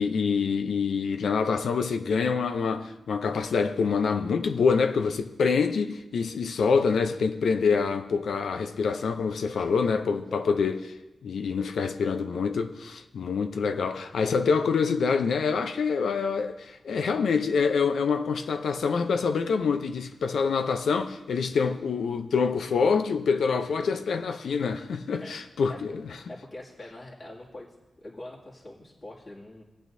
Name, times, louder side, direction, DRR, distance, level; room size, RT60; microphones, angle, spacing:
voice 1, 0.0-10.8 11.2-26.0, left 5 dB, 90° left, 0.6 m, -26 dB
voice 2, 10.3-10.6 25.2-25.3 25.7-25.8 26.3-27.7 28.0-29.6, left 1 dB, 45° left, 2.3 m, -43 dB
18.0 x 8.7 x 2.7 m
cardioid pair, 80°, 0 cm